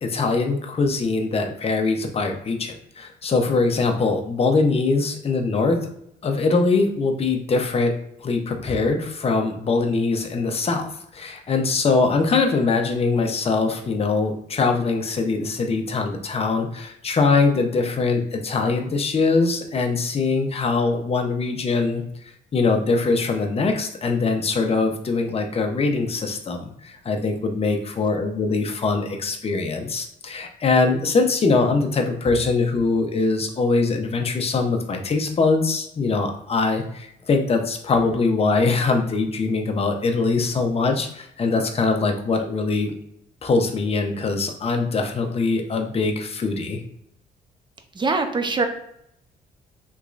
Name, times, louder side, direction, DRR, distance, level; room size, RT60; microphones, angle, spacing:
voice 1, 0.0-5.9 6.2-7.9 8.2-10.9 11.1-22.0 22.5-42.9 43.4-46.8, left 3 dB, 35° left, 3 dB, 0.6 m, -22 dB
voice 2, 48.0-48.6, right 3 dB, 25° right, 6 dB, 0.5 m, -22 dB
3.5 x 3.1 x 2.4 m, 0.74 s
cardioid pair, 75°, 18 cm